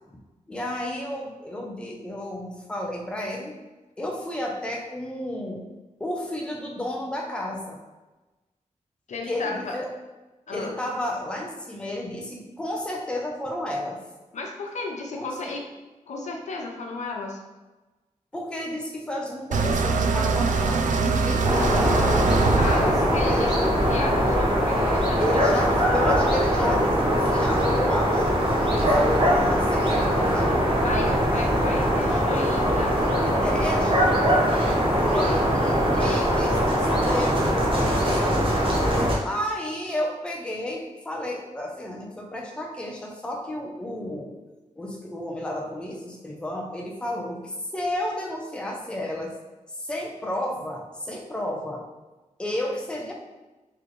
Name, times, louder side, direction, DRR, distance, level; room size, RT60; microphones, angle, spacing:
voice 1, 0.5-3.5 4.0-5.7 6.0-7.8 9.3-9.9 10.5-14.0 15.1-15.3 18.3-22.1 22.7-23.7 25.2-28.3 28.7-30.6 33.2-34.4 35.0-38.5 39.2-44.3 44.8-49.4 49.7-51.8 52.4-53.1, left 1 dB, 10° left, -1 dB, 0.5 m, -32 dB
voice 2, 9.1-9.7 10.5-10.8 14.3-15.6 16.1-17.4 22.6-25.2 25.6-26.1 30.8-34.4 35.2-35.3, left 3 dB, 70° left, 1 dB, 0.6 m, -34 dB
sound 1, 19.5-24.5, right 4 dB, 85° right, 0.4 m, -24 dB
sound 2, 21.4-39.2, equal, 45° right, 0.8 m, -22 dB
4.1 x 3.1 x 3.1 m, 1.1 s
wide cardioid pair, 165°, 13 cm